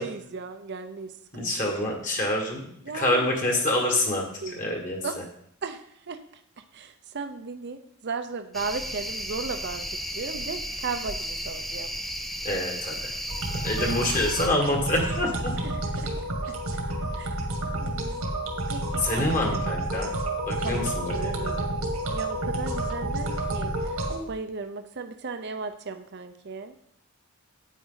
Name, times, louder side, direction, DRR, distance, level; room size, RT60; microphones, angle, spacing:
voice 1, 0.0-1.8 2.8-3.3 4.4-4.7 5.0-5.1 5.6-6.2 6.6-9.9 10.1-11.9 13.8-14.2 15.6-16.1 16.5-16.6 17.2-17.3 17.8-18.2 18.7-19.3 20.6-21.7 22.1-26.8, right 4 dB, 50° right, 8 dB, 0.6 m, -36 dB
voice 2, 1.3-5.0 12.4-13.1 13.5-15.5 19.0-20.1 20.5-21.5, left 1 dB, 35° left, 0 dB, 1.8 m, -27 dB
sound 1, 8.5-14.5, equal, ahead, 0.4 m, -34 dB
sound 2, 13.3-24.2, right 1 dB, 85° right, 2.0 m, -30 dB
9.2 x 9.1 x 4.0 m, 0.70 s
head